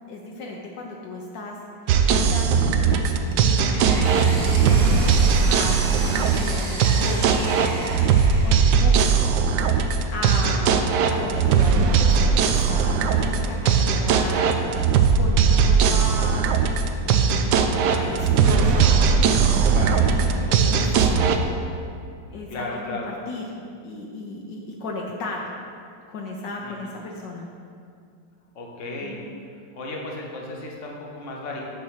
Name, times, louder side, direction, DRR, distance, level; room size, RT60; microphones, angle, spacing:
voice 1, 0.1-1.6 1.8-7.8 8.4-9.4 10.1-14.6 15.1-16.6 17.0-18.9 19.4-19.7 20.5-21.5 22.3-23.5 23.8-25.5 26.1-27.5 29.0-29.2, left 2 dB, 70° left, -1 dB, 1.4 m, -35 dB
sound 1, 1.9-21.4, right 6 dB, 75° right, 1.1 m, -19 dB
Engine, 3.3-9.0, right 2 dB, 35° right, 0.6 m, -35 dB
voice 2, 19.7-20.0 22.5-23.1 26.6-26.7 28.5-29.2 29.7-31.6, left 2 dB, 45° left, -1 dB, 1.4 m, -34 dB
8.5 x 4.6 x 6.4 m, 2.4 s
omnidirectional pair, 2.0 m